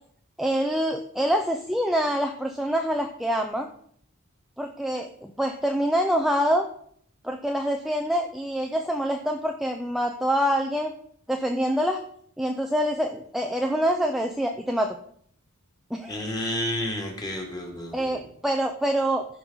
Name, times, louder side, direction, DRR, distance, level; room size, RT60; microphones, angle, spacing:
voice 1, 0.4-3.7 4.6-6.7 7.2-10.9 11.3-12.0 12.4-15.0 15.9-16.3 17.9-19.3, equal, ahead, 2 dB, 0.5 m, -26 dB
voice 2, 16.1-18.2, left 1 dB, 20° left, 0 dB, 2.3 m, -31 dB
15.0 x 5.4 x 4.0 m, 0.62 s
head